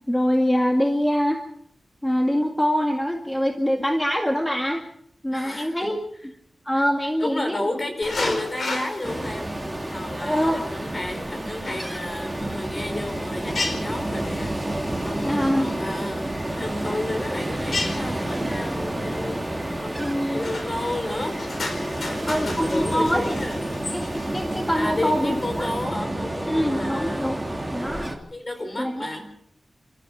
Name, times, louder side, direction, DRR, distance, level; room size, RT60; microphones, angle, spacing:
voice 1, 0.1-1.4 2.0-4.8 5.2-6.0 6.7-7.7 10.2-10.6 15.2-15.7 20.0-20.4 22.2-23.3 23.9-24.0 24.3-25.7 26.5-27.4 27.7-28.1 28.8-29.1, equal, 10° left, 2 dB, 2.0 m, -24 dB
voice 2, 5.3-5.9 6.7-6.9 7.2-9.5 9.9-21.4 21.9-23.6 24.7-27.3 28.3-29.3, left 1 dB, 30° left, 6 dB, 4.7 m, -32 dB
sound 1, 8.0-25.8, left 3 dB, 65° left, 4.8 m, -36 dB
Ocean, 9.0-28.2, right 1 dB, 10° right, 2.8 m, -30 dB
sound 2, 12.9-23.0, left 2 dB, 85° left, 5.5 m, -49 dB
29.0 x 14.0 x 6.3 m, 0.69 s
wide cardioid pair, 130°, 0 cm